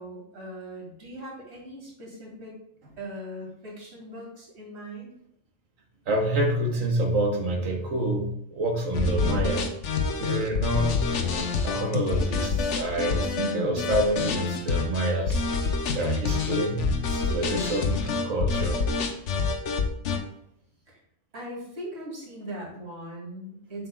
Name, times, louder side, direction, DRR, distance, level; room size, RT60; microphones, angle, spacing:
voice 1, 0.0-2.6 3.0-5.1 20.9-21.0 21.3-23.9, right 1 dB, 55° right, -3 dB, 2.3 m, -40 dB
voice 2, 6.1-9.7 10.2-11.1 11.6-15.4 15.9-18.8, right 1 dB, 85° right, 2 dB, 1.5 m, -27 dB
sound 1, 8.9-20.2, left 4 dB, 65° left, 1.1 m, -27 dB
7.5 x 6.7 x 2.2 m, 0.74 s
omnidirectional pair, 1.3 m